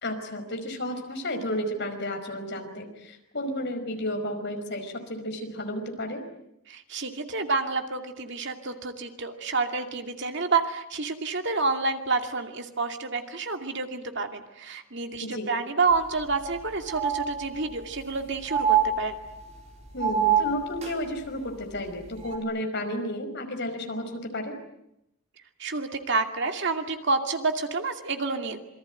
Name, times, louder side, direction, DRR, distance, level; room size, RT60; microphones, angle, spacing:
voice 1, 0.0-6.2 15.2-15.5 19.9-24.6, equal, 50° left, 5 dB, 5.2 m, -32 dB
voice 2, 6.7-19.2 25.6-28.6, right 4 dB, 50° right, 5 dB, 2.5 m, -29 dB
sound 1, 15.9-16.0 16.3-16.4 16.9-17.8 18.5-19.5 20.0-21.0 22.2-22.4, right 7 dB, 30° right, 4.5 m, -26 dB
27.5 x 23.5 x 9.2 m, 0.82 s
head